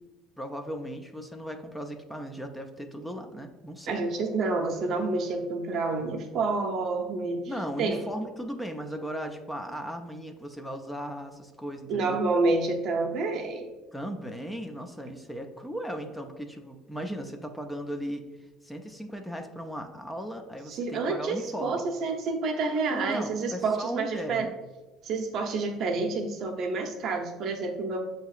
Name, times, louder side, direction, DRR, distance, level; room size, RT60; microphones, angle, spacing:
voice 1, 0.4-4.0 7.5-12.2 13.9-18.3 18.6-21.8 22.9-24.5, equal, 5° left, 5 dB, 0.4 m, -37 dB
voice 2, 3.9-7.4 7.8-8.0 11.9-13.7 20.7-24.5 25.0-28.0, right 3 dB, 55° right, 3 dB, 0.7 m, -28 dB
6.5 x 2.8 x 2.4 m, 1.2 s
supercardioid pair, 100°, 0 cm